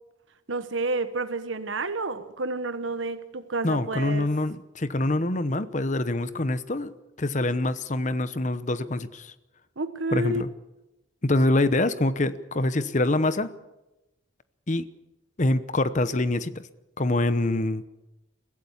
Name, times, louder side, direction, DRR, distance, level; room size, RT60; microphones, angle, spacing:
voice 1, 0.5-4.3 9.8-10.4, right 3 dB, 80° right, 11 dB, 1.2 m, -30 dB
voice 2, 3.6-6.9 7.2-9.3 10.1-10.5 11.2-13.5 14.7-14.9 15.4-16.7 17.0-17.8, left 2 dB, 40° left, 13 dB, 0.9 m, -25 dB
23.0 x 16.5 x 7.2 m, 0.99 s
head